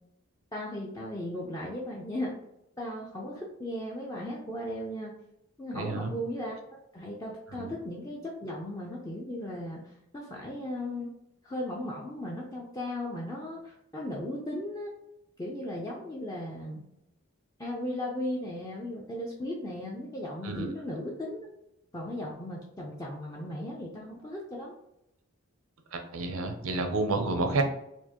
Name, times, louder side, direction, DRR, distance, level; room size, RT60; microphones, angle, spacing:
voice 1, 0.5-2.4 2.8-5.1 5.6-11.1 11.4-14.9 15.4-16.8 17.6-21.5 21.9-24.7, left 1 dB, 15° left, -3 dB, 0.5 m, -36 dB
voice 2, 5.7-6.1 7.5-7.7 20.4-20.7 25.9-27.6, right 3 dB, 80° right, 6 dB, 0.6 m, -30 dB
4.3 x 2.5 x 2.9 m, 0.84 s
head